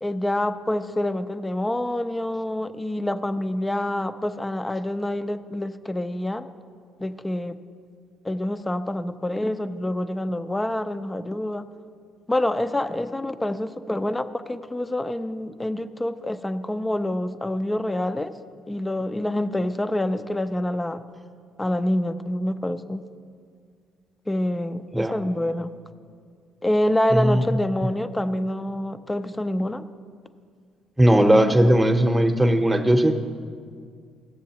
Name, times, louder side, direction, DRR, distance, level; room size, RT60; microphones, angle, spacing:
voice 1, 0.0-6.5 7.0-7.6 8.2-11.7 12.3-18.4 18.7-21.0 21.6-23.1 24.3-25.7 26.6-29.9, left 1 dB, 15° left, 11 dB, 0.5 m, -26 dB
voice 2, 27.1-27.6 31.0-33.1, right 1 dB, 10° right, 5 dB, 0.8 m, -18 dB
16.0 x 7.0 x 2.9 m, 2.1 s
supercardioid pair, 80°, 0 cm